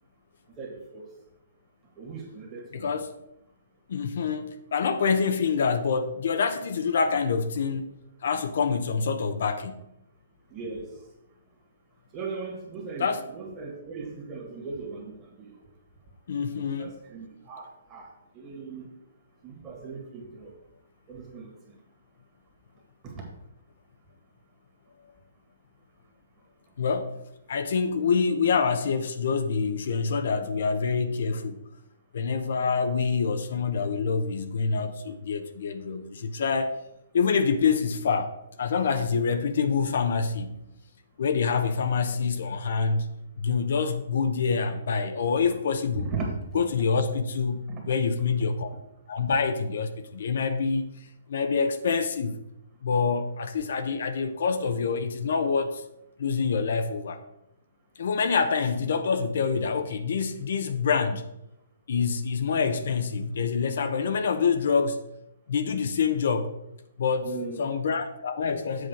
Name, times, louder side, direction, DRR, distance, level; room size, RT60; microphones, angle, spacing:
voice 1, 0.6-1.1 2.0-3.0 10.5-10.9 12.1-15.5 16.5-18.1 18.3-18.9 19.4-20.5 21.1-21.8 23.0-23.2 45.9-46.6 47.7-48.0 67.2-67.7, right 4 dB, 20° right, -1 dB, 1.9 m, -38 dB
voice 2, 2.7-3.1 3.9-4.4 4.7-7.9 8.2-9.8 13.0-13.2 16.3-17.0 26.8-27.1 27.5-31.6 32.1-36.8 37.1-40.6 41.2-43.1 43.4-46.1 46.5-48.7 49.1-50.9 51.3-52.4 52.8-55.8 56.2-57.2 58.0-61.2 61.9-65.0 65.5-66.5 67.0-67.3 67.6-68.9, left 5 dB, 65° left, 9 dB, 0.7 m, -26 dB
7.7 x 3.7 x 6.4 m, 0.84 s
hypercardioid pair, 160°, 0 cm